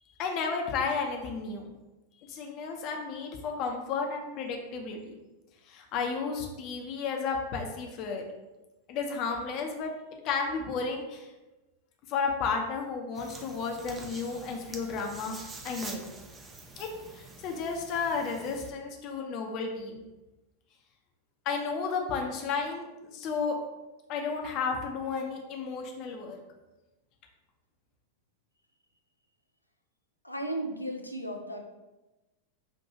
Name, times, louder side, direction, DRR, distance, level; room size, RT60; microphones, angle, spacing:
voice 1, 0.2-1.7 2.3-5.2 5.7-8.2 8.9-9.9 10.2-11.3 12.1-15.4 15.6-16.1 16.8-20.0 21.4-23.6 24.1-26.4, left 5 dB, 40° left, 2 dB, 0.7 m, -33 dB
sound 1, 13.1-18.7, right 3 dB, 15° right, 0.5 m, -46 dB
voice 2, 30.2-31.6, right 1 dB, 90° left, 3 dB, 0.5 m, -35 dB
5.7 x 2.6 x 2.9 m, 1.1 s
figure-of-eight pair, 90°, 0 cm